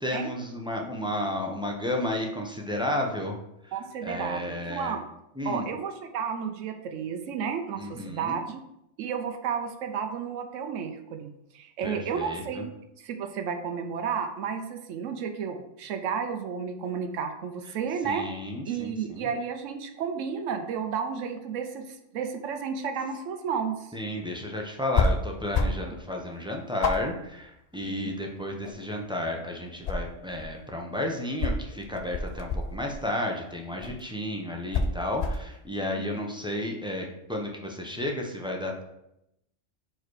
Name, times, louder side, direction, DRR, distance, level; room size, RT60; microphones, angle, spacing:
voice 1, 0.0-3.4 3.6-3.7 4.0-5.0 5.4-5.7 7.8-8.4 11.8-12.6 18.0-19.3 23.9-38.8, left 1 dB, 5° right, 0 dB, 0.6 m, -32 dB
voice 2, 3.7-5.0 5.4-8.6 9.0-12.7 13.0-18.3 18.6-23.9 28.0-28.1, right 6 dB, 90° right, 6 dB, 1.0 m, -32 dB
sound 1, 24.9-25.2 25.5-25.9 26.2-26.3 26.8-28.1 28.5-29.3 29.6-30.6 31.4-33.0 33.8-34.0 34.7-35.5, left 3 dB, 65° left, 0.4 m, -28 dB
4.8 x 4.3 x 4.7 m, 0.84 s
omnidirectional pair, 1.3 m